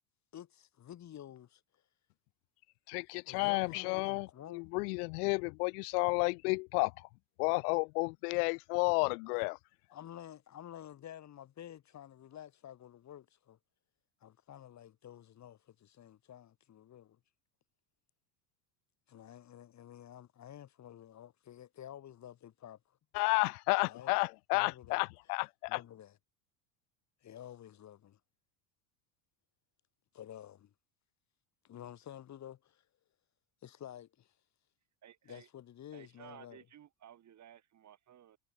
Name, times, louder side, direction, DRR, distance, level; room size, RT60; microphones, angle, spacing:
voice 1, 0.3-1.6 3.3-4.8 9.3-9.4 9.9-13.6 14.2-17.2 19.1-22.8 23.8-24.1 24.5-25.0 25.7-26.2 27.2-28.2 30.1-30.7 31.6-32.8 33.6-34.3 35.2-36.6, left 11 dB, 40° left, 3.2 m, -51 dB
voice 2, 2.9-6.9 7.4-9.6 23.1-25.8, left 29 dB, 85° left, 0.9 m, -32 dB
voice 3, 35.0-35.5 35.9-38.4, right 10 dB, 40° right, 6.9 m, -56 dB
supercardioid pair, 125°, 45 cm